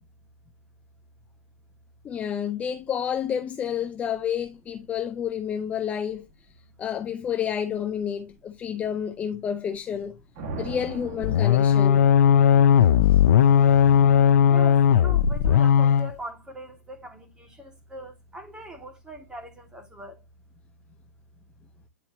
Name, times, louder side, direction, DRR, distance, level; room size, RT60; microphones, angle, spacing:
voice 1, 2.0-6.3 6.8-10.2 10.6-12.0 12.3-14.5, left 8 dB, 15° left, 0.5 m, -30 dB
sound 1, 10.4-12.6, right 3 dB, 40° right, 1.9 m, -38 dB
sound 2, 11.2-16.1, left 8 dB, 65° left, 0.6 m, -17 dB
voice 2, 13.9-20.2, equal, 10° right, 2.4 m, -42 dB
10.0 x 4.1 x 2.9 m
hypercardioid pair, 135°, 8 cm